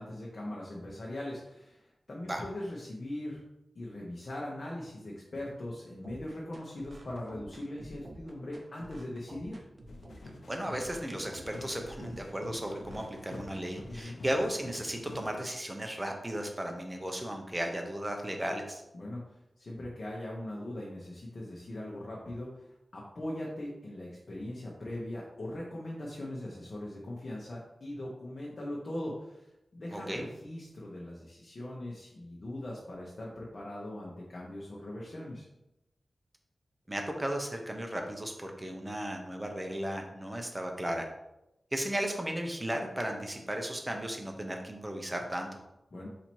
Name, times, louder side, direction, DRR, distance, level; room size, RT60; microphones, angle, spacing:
voice 1, 0.0-3.4 3.7-9.6 13.9-14.2 18.9-19.2 19.6-22.7 22.9-29.5 29.7-35.5 45.9-46.1, left 1 dB, 50° left, -4 dB, 0.9 m, -40 dB
sound 1, 6.0-14.0, right 1 dB, 45° right, 0.6 m, -50 dB
sound 2, 9.9-15.2, left 3 dB, 75° left, 0.6 m, -47 dB
voice 2, 10.5-18.8 29.9-30.2 36.9-41.1 41.7-45.6, right 1 dB, 15° right, 3 dB, 0.7 m, -35 dB
4.2 x 2.8 x 4.5 m, 0.90 s
wide cardioid pair, 80°, 0 cm